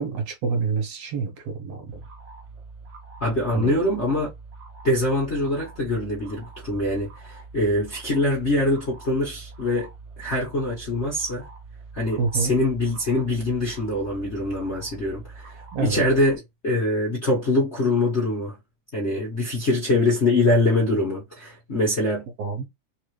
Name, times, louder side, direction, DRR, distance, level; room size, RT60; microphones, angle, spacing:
voice 1, 0.0-1.9 3.5-3.8 12.2-12.5 15.7-16.0 22.4-22.7, right 5 dB, 65° right, 1.9 m, -27 dB
sound 1, 1.9-16.4, right 4 dB, 85° right, 1.0 m, -44 dB
voice 2, 3.2-4.3 4.8-9.9 10.2-11.4 11.9-16.4 16.6-18.5 18.9-22.3, left 1 dB, 85° left, 0.6 m, -24 dB
4.6 x 2.6 x 3.1 m
omnidirectional pair, 3.5 m